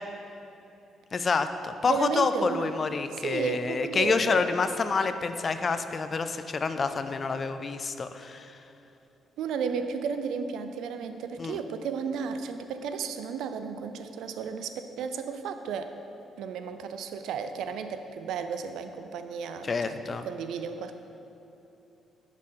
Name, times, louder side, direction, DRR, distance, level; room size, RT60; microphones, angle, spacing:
voice 1, 1.1-8.6 11.4-11.6 19.6-20.3, left 4 dB, 40° left, 10 dB, 0.3 m, -28 dB
voice 2, 1.8-2.7 3.1-4.5 9.4-15.9 16.4-20.9, right 6 dB, 80° right, 9 dB, 0.3 m, -33 dB
6.3 x 3.8 x 5.6 m, 2.9 s
cardioid pair, 90°, 0 cm